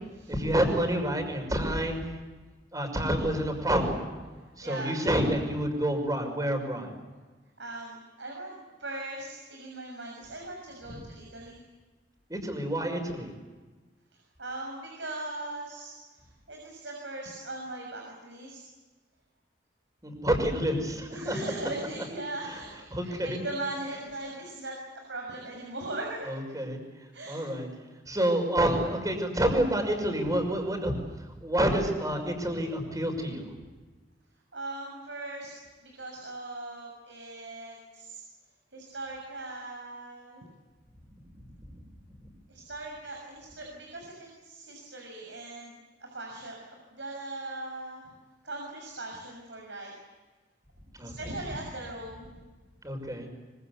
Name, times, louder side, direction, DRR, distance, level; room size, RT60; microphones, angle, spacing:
voice 1, 0.3-2.0 2.7-4.1 4.6-6.9 10.9-11.0 12.3-13.3 20.0-21.4 22.5-22.6 22.9-23.4 26.3-26.8 27.3-27.7 28.1-31.0 31.4-33.5 51.0-51.3 52.8-53.3, right 1 dB, 20° right, 5 dB, 6.0 m, -28 dB
voice 2, 4.6-4.9 7.6-11.6 14.4-16.0 16.5-18.6 21.1-26.6 27.1-27.5 28.1-28.2 34.5-35.5 35.8-38.2 38.7-40.4 42.5-48.1 48.4-49.9 51.0-52.3, right 2 dB, 85° right, 1 dB, 6.7 m, -39 dB
25.0 x 25.0 x 8.3 m, 1.3 s
head